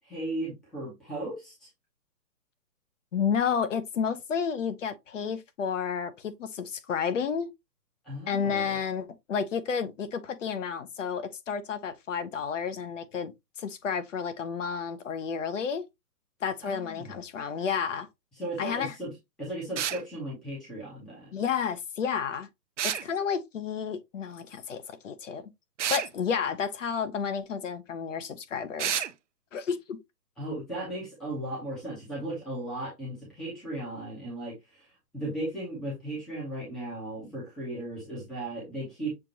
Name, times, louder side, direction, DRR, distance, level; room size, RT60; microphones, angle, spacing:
voice 1, 0.0-1.7 8.0-8.8 16.6-17.2 18.4-19.1 19.4-21.3 30.4-34.9 35.1-39.1, right 1 dB, ahead, 0.6 m, -36 dB
voice 2, 3.1-7.5 8.3-13.3 13.6-15.9 16.4-18.1 18.6-18.9 21.3-22.5 22.8-25.4 25.9-29.0 29.5-30.0, left 6 dB, 50° left, 0.8 m, -31 dB
sound 1, 19.8-20.0 22.8-23.1 25.8-26.1 28.8-29.1, right 9 dB, 50° right, 0.5 m, -29 dB
6.7 x 2.5 x 2.7 m
hypercardioid pair, 145°, 48 cm